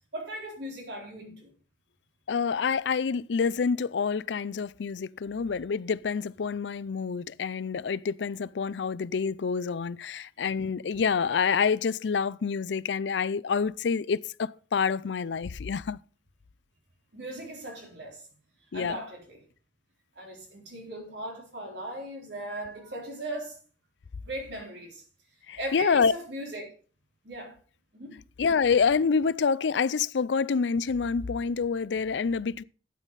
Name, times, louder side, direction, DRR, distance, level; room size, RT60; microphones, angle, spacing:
voice 1, 0.1-1.5 17.1-18.2 18.7-19.4 20.2-23.6 24.2-25.0 25.6-26.7 27.2-27.6 27.9-28.2, right 1 dB, 75° right, 3.8 m, -38 dB
voice 2, 2.3-16.0 18.7-19.0 25.5-26.1 28.4-32.6, left 5 dB, 85° left, 0.5 m, -27 dB
12.5 x 9.2 x 4.1 m
head